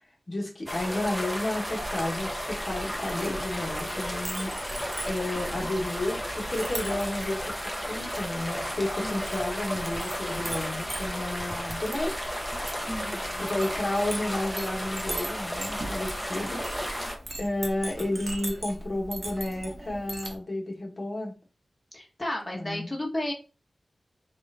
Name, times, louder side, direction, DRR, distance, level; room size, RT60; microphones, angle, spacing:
voice 1, 0.3-7.6 7.9-12.3 13.4-16.6 17.4-21.3 22.5-22.9, left 1 dB, 55° left, -1 dB, 1.2 m, -32 dB
sound 1, 0.7-17.2, equal, 5° left, 0.8 m, -33 dB
Chink clink, 1.8-20.4, right 1 dB, 45° right, 1.0 m, -40 dB
voice 2, 9.0-9.6 12.9-13.5 21.9-23.3, left 1 dB, 25° left, -1 dB, 1.2 m, -34 dB
3.7 x 2.4 x 3.3 m, 0.33 s
cardioid pair, 50°, 0 cm